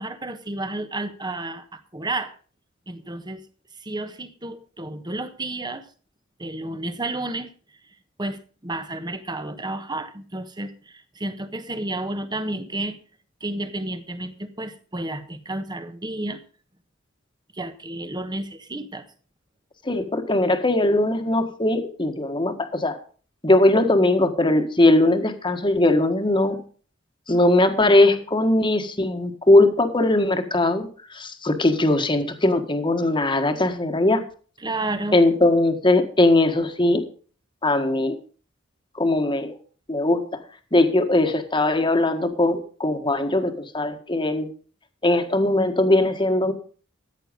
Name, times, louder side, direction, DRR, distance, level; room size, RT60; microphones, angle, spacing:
voice 1, 0.0-2.3 2.9-3.4 3.8-5.8 6.4-7.5 8.2-13.0 13.4-16.4 17.5-19.0 34.6-35.2, right 2 dB, 20° right, 10 dB, 1.3 m, -31 dB
voice 2, 19.8-23.0 23.4-26.6 27.3-34.2 35.1-37.0 37.6-38.2 38.9-39.5 39.9-40.4 40.7-44.5 45.0-46.5, left 2 dB, 25° left, 7 dB, 1.6 m, -20 dB
14.0 x 9.1 x 5.3 m, 0.41 s
head